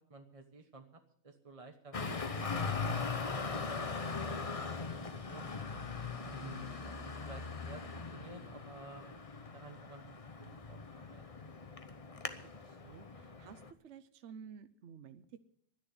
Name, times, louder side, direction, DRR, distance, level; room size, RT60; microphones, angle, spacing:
voice 1, 0.1-1.9 2.3-5.5 6.2-7.8 8.1-9.1 9.4-11.4, right 3 dB, 25° right, 4 dB, 1.0 m, -54 dB
Traffic noise roadway noise, 1.9-13.7, left 4 dB, 30° left, 0.8 m, -40 dB
voice 2, 12.6-15.4, right 7 dB, 60° right, 10 dB, 1.0 m, -53 dB
12.0 x 10.0 x 9.5 m, 0.64 s
omnidirectional pair, 1.5 m